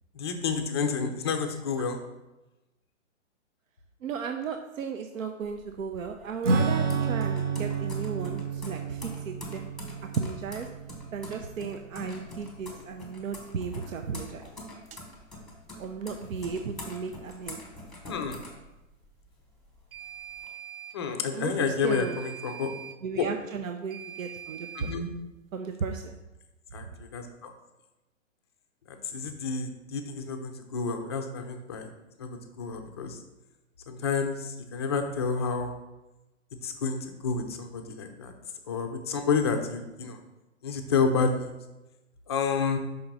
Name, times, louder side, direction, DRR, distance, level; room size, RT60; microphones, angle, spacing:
voice 1, 0.1-2.0 18.1-18.4 20.9-22.7 23.2-23.3 24.7-25.1 26.7-27.5 28.9-31.9 32.2-33.2 33.9-35.7 36.6-38.3 38.7-40.2 40.6-41.5 42.3-42.8, left 5 dB, 20° left, 5 dB, 0.3 m, -30 dB
voice 2, 4.0-9.7 10.2-10.7 11.1-14.5 15.8-17.6 21.3-22.2 23.0-24.9 25.5-26.2, right 6 dB, 85° right, 5 dB, 0.7 m, -35 dB
sound 1, 5.4-19.2 19.6-20.5, left 1 dB, ahead, 1.0 m, -45 dB
Acoustic guitar / Strum, 6.4-12.4, right 4 dB, 65° right, 1.1 m, -30 dB
sound 2, 14.9-15.0 19.9-21.0 21.9-23.0 23.9-25.0, right 10 dB, 45° right, 0.5 m, -43 dB
5.3 x 3.8 x 5.8 m, 1.0 s
hypercardioid pair, 140°, 39 cm